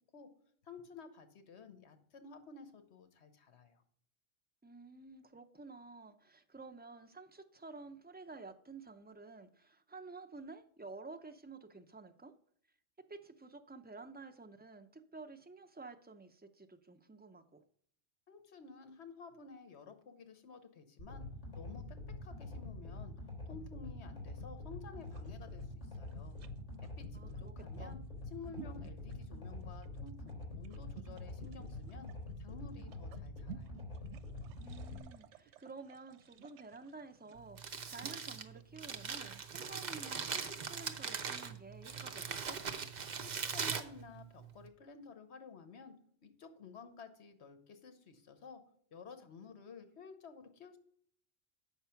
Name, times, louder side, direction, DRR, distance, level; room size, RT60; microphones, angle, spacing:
voice 1, 0.6-3.8 18.3-21.2 21.6-23.1 23.4-26.4 27.0-28.0 28.3-32.1 32.4-33.7 43.2-45.9 46.2-48.6 48.9-50.8, left 4 dB, 70° left, 9 dB, 1.2 m, -53 dB
voice 2, 4.6-12.3 13.1-17.6 27.1-28.0 34.6-42.6, right 3 dB, 15° right, 6 dB, 0.3 m, -52 dB
sound 1, 21.0-35.0, left 2 dB, 30° left, 3.7 m, -46 dB
sound 2, 25.0-39.8, right 12 dB, 85° right, 0.9 m, -56 dB
Crumpling crinkling, 37.4-44.7, right 6 dB, 45° right, 0.8 m, -41 dB
8.1 x 5.8 x 5.7 m, 0.63 s
omnidirectional pair, 1.2 m